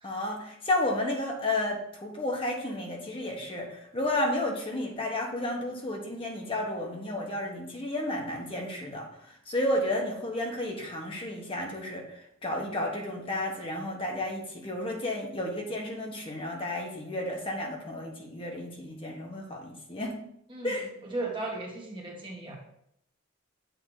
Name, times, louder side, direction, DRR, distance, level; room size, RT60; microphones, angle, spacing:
voice 1, 0.0-9.1 9.5-12.0 12.4-20.2 20.6-20.9, left 1 dB, 25° left, 0 dB, 1.1 m, -32 dB
voice 2, 20.5-22.6, right 2 dB, 25° right, -1 dB, 1.3 m, -36 dB
7.8 x 2.8 x 4.7 m, 0.73 s
head